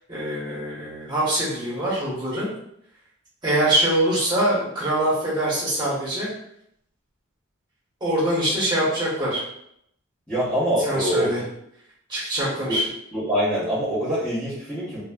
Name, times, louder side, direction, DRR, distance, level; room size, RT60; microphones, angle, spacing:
voice 1, 0.1-2.5 3.4-6.3 8.0-9.4 10.8-11.4 12.1-12.8, right 1 dB, 20° right, -8 dB, 1.1 m, -23 dB
voice 2, 10.3-11.3 12.7-12.8 13.1-15.0, equal, 5° left, -13 dB, 0.8 m, -24 dB
3.3 x 2.4 x 2.3 m, 0.73 s
head